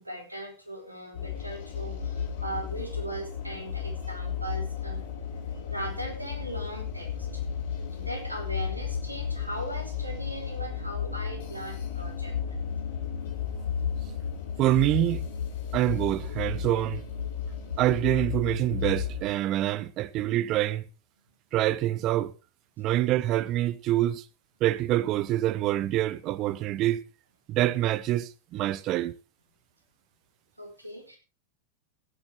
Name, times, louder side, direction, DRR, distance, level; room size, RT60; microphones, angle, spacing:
voice 1, 0.0-5.0 5.7-7.4 7.9-12.3 30.6-31.2, right 1 dB, 85° right, 3.8 m, -39 dB
sound 1, 1.1-19.2, left 7 dB, 55° left, 4.6 m, -33 dB
voice 2, 14.6-15.2 15.7-17.0 17.8-20.8 21.5-22.3 22.8-24.2 24.6-27.0 27.5-29.1, right 14 dB, 35° right, 0.9 m, -26 dB
15.5 x 9.5 x 4.6 m
figure-of-eight pair, 90°, 0 cm